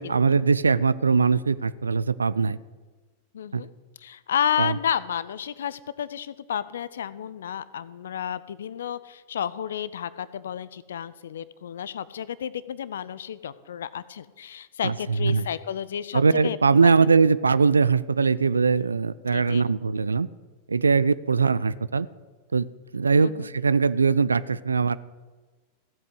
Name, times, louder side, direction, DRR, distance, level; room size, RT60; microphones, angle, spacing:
voice 1, 0.0-2.6 3.5-3.6 4.6-4.8 14.8-14.9 15.2-15.5 16.1-20.3 20.7-22.1 22.5-22.7 22.9-25.0, right 5 dB, 75° right, 18 dB, 0.4 m, -21 dB
voice 2, 3.3-3.7 4.0-16.6 16.8-16.9 19.3-19.7 23.1-23.5, left 9 dB, 65° left, 17 dB, 0.5 m, -31 dB
15.0 x 8.0 x 8.2 m, 1.3 s
figure-of-eight pair, 90°, 0 cm